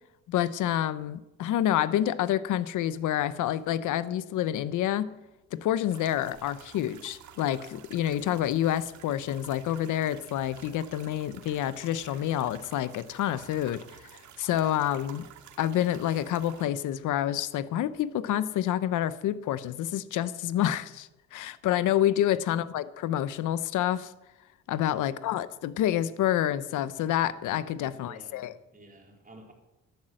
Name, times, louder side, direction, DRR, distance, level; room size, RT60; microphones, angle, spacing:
voice 1, 0.3-5.1 5.5-13.8 14.4-15.2 15.6-24.1 24.7-28.5, left 12 dB, 80° left, 15 dB, 0.9 m, -28 dB
sound 1, 5.9-16.6, right 9 dB, 75° right, 2.0 m, -51 dB
voice 2, 27.7-29.5, right 1 dB, 30° right, 1 dB, 4.3 m, -53 dB
13.0 x 12.0 x 7.7 m, 0.96 s
cardioid pair, 90°, 30 cm